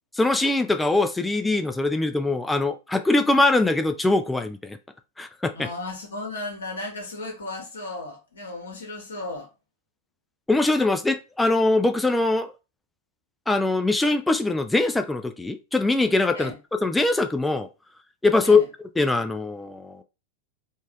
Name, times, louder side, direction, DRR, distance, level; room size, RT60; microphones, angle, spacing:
voice 1, 0.1-4.8 5.2-5.7 10.5-12.5 13.5-16.5 16.8-17.7 18.2-18.6 19.0-20.0, left 2 dB, 5° left, 0.4 m, -22 dB
voice 2, 5.5-9.5 16.3-16.5 18.4-18.7, left 2 dB, 70° left, 1.3 m, -35 dB
3.8 x 2.4 x 3.6 m
figure-of-eight pair, 90°, 0 cm